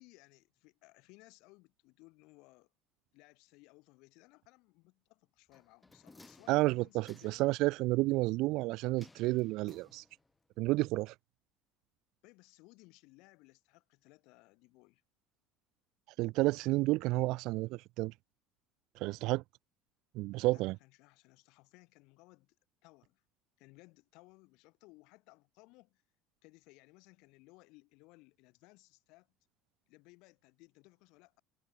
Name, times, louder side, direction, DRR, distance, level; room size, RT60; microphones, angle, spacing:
voice 1, 0.0-2.7 3.1-7.5 12.2-15.0 20.4-22.6 22.8-23.2 23.6-26.0 26.4-29.3 29.9-31.4, left 24 dB, 60° left, 7.8 m, -61 dB
sound 1, 5.5-7.6 9.0-10.4 10.7-10.8, left 2 dB, 5° left, 7.0 m, -60 dB
voice 2, 6.5-10.0 10.6-11.1 16.2-18.1 19.0-19.4 20.1-20.7, right 20 dB, 55° right, 0.8 m, -31 dB
cardioid pair, 175°, 0 cm